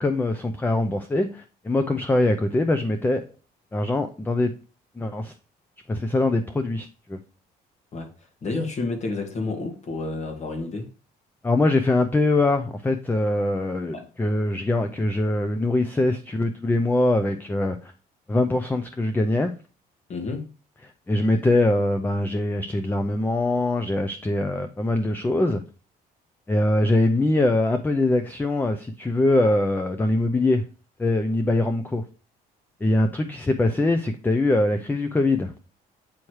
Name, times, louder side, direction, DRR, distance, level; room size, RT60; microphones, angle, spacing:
voice 1, 0.0-3.2 3.7-4.5 5.0-5.3 5.9-7.2 11.4-17.9 18.3-19.5 21.1-25.6 26.5-30.6 31.0-32.0 32.8-35.5, left 2 dB, 10° left, 0.6 m, -23 dB
voice 2, 8.4-10.9 13.9-14.1 20.1-20.5, left 3 dB, 40° left, 1.8 m, -30 dB
8.5 x 3.2 x 4.6 m
cardioid pair, 110°, 17 cm